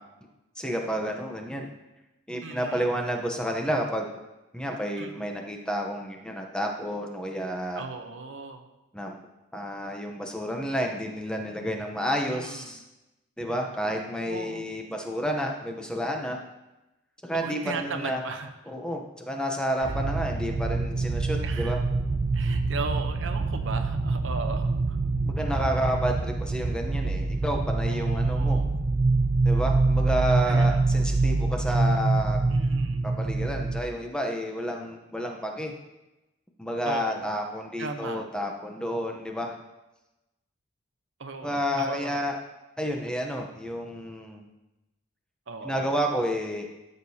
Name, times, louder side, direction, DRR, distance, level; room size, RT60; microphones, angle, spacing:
voice 1, 0.6-1.7 2.3-4.1 4.5-7.8 8.9-9.1 9.5-12.8 13.4-16.4 17.2-18.2 18.7-21.8 25.3-28.6 29.4-32.4 33.0-35.7 36.6-39.6 41.4-42.4 42.8-44.4 45.6-46.7, equal, 5° left, 2 dB, 0.8 m, -30 dB
voice 2, 2.4-2.9 5.0-5.3 7.7-8.7 12.3-12.7 14.3-14.7 17.3-18.5 19.8-20.0 21.4-21.9 22.3-25.0 27.9-28.7 30.5-30.8 32.5-33.0 36.9-37.3 37.8-38.3 41.2-42.2 45.5-45.9, right 4 dB, 65° right, 6 dB, 0.8 m, -37 dB
sound 1, 19.8-33.8, right 3 dB, 30° right, 0.4 m, -25 dB
13.0 x 6.6 x 2.8 m, 1.0 s
head